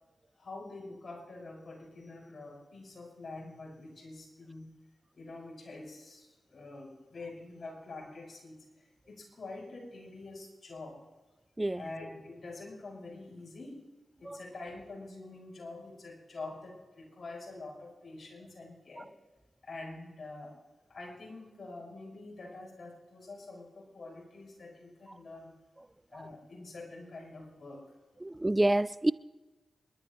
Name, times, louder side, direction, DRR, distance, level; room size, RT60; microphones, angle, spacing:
voice 1, 0.4-4.8 5.1-11.1 11.7-13.9 14.2-19.1 19.6-20.5 20.9-25.5 26.1-27.9, left 2 dB, 60° left, 6.0 m, -46 dB
voice 2, 28.2-29.1, right 1 dB, 20° right, 0.4 m, -27 dB
29.0 x 12.5 x 3.2 m
cardioid pair, 45°, 0 cm